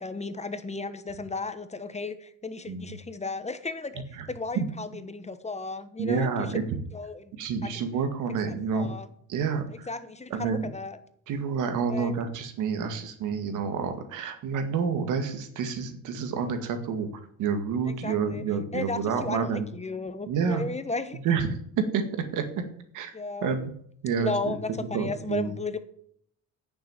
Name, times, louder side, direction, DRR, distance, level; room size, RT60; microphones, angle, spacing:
voice 1, 0.0-4.0 4.3-6.5 6.9-7.4 7.6-7.8 8.5-9.1 9.9-11.0 11.9-12.1 18.0-18.4 18.7-21.2 23.1-23.6 24.2-25.8, left 3 dB, 20° left, 11 dB, 1.2 m, -34 dB
voice 2, 6.0-6.6 7.3-8.9 9.3-9.9 10.3-10.7 11.3-19.7 20.3-20.6 21.2-21.5 21.8-22.6 22.9-23.1 23.4-23.7 24.0-24.5 24.9-25.5, right 6 dB, 85° right, 8 dB, 2.0 m, -29 dB
9.3 x 6.8 x 8.9 m, 0.66 s
cardioid pair, 90°, 30 cm